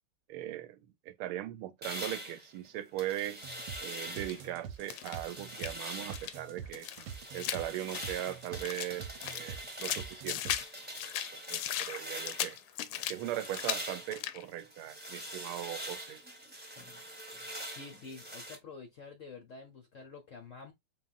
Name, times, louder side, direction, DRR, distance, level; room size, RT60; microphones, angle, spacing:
voice 1, 0.3-0.8 1.1-3.4 3.8-6.9 7.3-10.5 11.5-12.6 13.1-16.2, right 13 dB, 90° right, 1.5 m, -39 dB
sound 1, 1.8-4.5 4.9-6.3 6.7-12.6 12.9-18.6, equal, 10° right, 0.7 m, -44 dB
sound 2, 3.4-10.6, right 8 dB, 70° right, 1.3 m, -46 dB
sound 3, 4.1-4.4 4.8-5.8 6.1-6.4 6.7-8.9 9.2-10.7 11.0-13.2 13.5-13.8 14.1-14.5, left 12 dB, 85° left, 1.5 m, -37 dB
voice 2, 17.7-20.7, left 4 dB, 60° left, 0.8 m, -48 dB
4.1 x 3.9 x 2.4 m
omnidirectional pair, 2.3 m